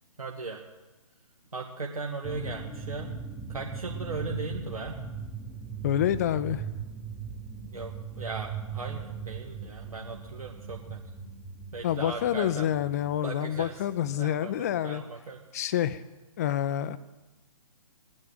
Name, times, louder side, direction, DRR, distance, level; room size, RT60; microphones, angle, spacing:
voice 1, 0.2-0.6 1.5-3.1 3.5-5.0 7.7-11.0 11.7-12.7 13.2-13.7 14.2-15.4, right 3 dB, 70° right, 0 dB, 1.9 m, -37 dB
sound 1, 2.2-14.2, right 6 dB, ahead, 1.1 m, -39 dB
voice 2, 5.8-6.6 11.8-15.0 15.5-16.0 16.4-17.0, left 11 dB, 25° left, 14 dB, 0.6 m, -27 dB
17.5 x 10.0 x 7.9 m, 1.1 s
figure-of-eight pair, 130°, 19 cm